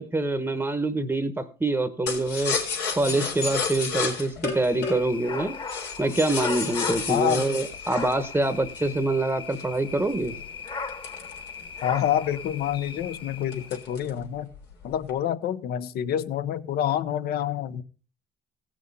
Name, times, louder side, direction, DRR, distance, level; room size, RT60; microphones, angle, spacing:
voice 1, 0.0-2.6 2.9-5.6 6.0-10.3, right 2 dB, 10° right, 10 dB, 0.9 m, -25 dB
sound 1, 2.1-9.0 9.5-12.0 12.3-12.4 12.7-13.1 13.5-14.2 14.5-15.1, left 5 dB, 90° left, 3.7 m, -31 dB
sound 2, 4.5-14.0, left 5 dB, 30° left, 1.4 m, -38 dB
voice 2, 7.1-7.4 11.8-14.5 14.8-17.8, left 10 dB, 65° left, 15 dB, 0.8 m, -27 dB
16.0 x 6.2 x 5.3 m, 0.38 s
cardioid pair, 110°, 17 cm